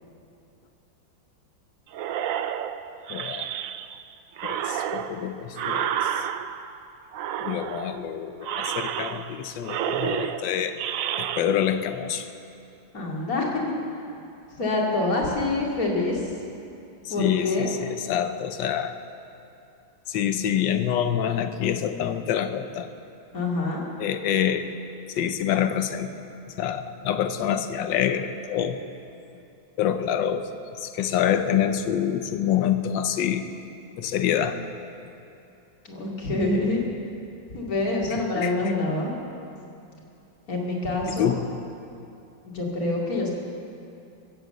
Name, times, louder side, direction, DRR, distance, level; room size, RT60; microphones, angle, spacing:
sound 1, 1.9-4.0 4.4-6.8 7.1-8.0 8.4-9.4 9.6-11.4, right 10 dB, 85° right, 0.7 m, -30 dB
voice 1, 3.1-3.5 4.4-6.3 7.4-10.8 11.2-12.3 17.1-19.0 20.1-22.9 24.0-24.7 25.1-26.1 26.5-28.8 29.8-33.5 33.9-34.6 38.1-38.5 41.2-41.4, left 9 dB, 75° left, 9 dB, 1.5 m, -26 dB
voice 2, 12.9-13.5 14.6-16.2 17.1-17.7 23.3-23.8 35.8-36.8 37.5-39.1 40.5-41.3 42.5-43.3, left 2 dB, 45° left, -2 dB, 2.9 m, -26 dB
23.5 x 7.9 x 7.9 m, 2.7 s
omnidirectional pair, 2.1 m